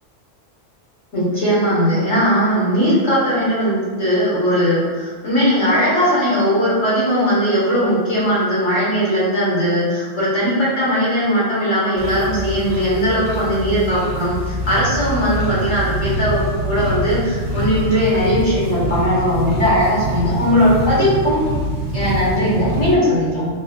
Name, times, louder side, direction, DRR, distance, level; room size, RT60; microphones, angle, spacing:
voice 1, 1.1-21.4 21.9-23.5, equal, 75° left, -9 dB, 1.9 m, -18 dB
sound 1, 12.0-22.9, right 1 dB, 65° right, 1.1 m, -24 dB
4.1 x 2.7 x 2.4 m, 1.5 s
omnidirectional pair, 1.3 m